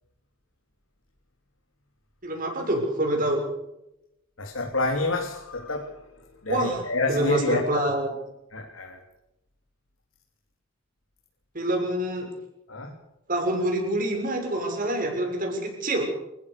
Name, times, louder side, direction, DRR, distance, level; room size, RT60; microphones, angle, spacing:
voice 1, 2.2-3.4 6.5-6.8 7.1-8.1 11.5-12.3 13.3-16.0, right 1 dB, 45° right, 1 dB, 6.6 m, -26 dB
voice 2, 4.4-6.0 6.4-7.6 8.5-9.0 12.7-12.9, left 2 dB, 90° left, 1 dB, 3.4 m, -28 dB
28.5 x 15.5 x 6.9 m, 0.87 s
head